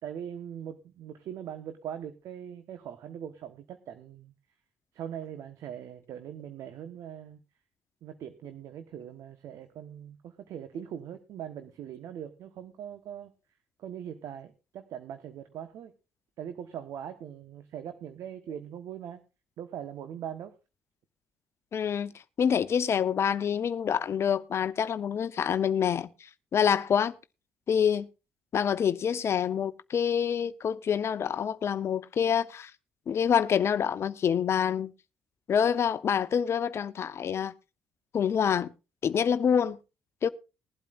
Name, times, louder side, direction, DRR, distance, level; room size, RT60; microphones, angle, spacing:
voice 1, 0.0-4.3 4.9-7.4 8.0-13.3 13.8-15.9 16.4-19.2 19.6-20.5, right 9 dB, 65° right, 1.2 m, -41 dB
voice 2, 21.7-22.1 22.4-27.1 27.7-28.1 28.5-32.7 33.1-34.9 35.5-37.5 38.1-38.7 39.0-39.8 40.2-40.3, left 8 dB, 50° left, 0.8 m, -26 dB
20.0 x 12.0 x 2.5 m
hypercardioid pair, 45°, 6 cm